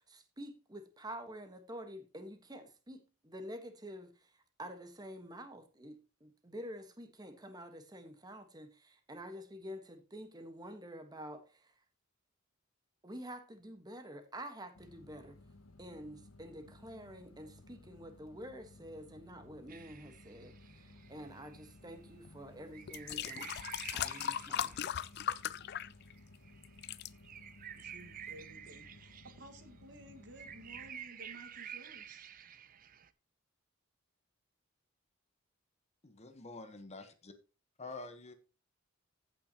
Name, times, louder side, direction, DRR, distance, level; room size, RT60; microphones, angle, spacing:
voice 1, 0.0-11.7 13.0-15.4 15.8-23.5 23.9-24.9, equal, 20° right, 1.3 m, -48 dB
sound 1, 14.7-30.9, left 2 dB, 80° left, 1.0 m, -58 dB
sound 2, 19.7-33.1, right 9 dB, 45° right, 0.6 m, -51 dB
sound 3, 22.2-22.4 22.9-26.4 26.6-27.1 27.8-27.9, left 10 dB, 55° left, 0.4 m, -38 dB
voice 2, 27.8-32.3, right 1 dB, 60° right, 1.8 m, -55 dB
voice 3, 36.0-37.3 37.8-38.3, left 3 dB, 35° left, 1.0 m, -47 dB
15.5 x 5.8 x 2.9 m
head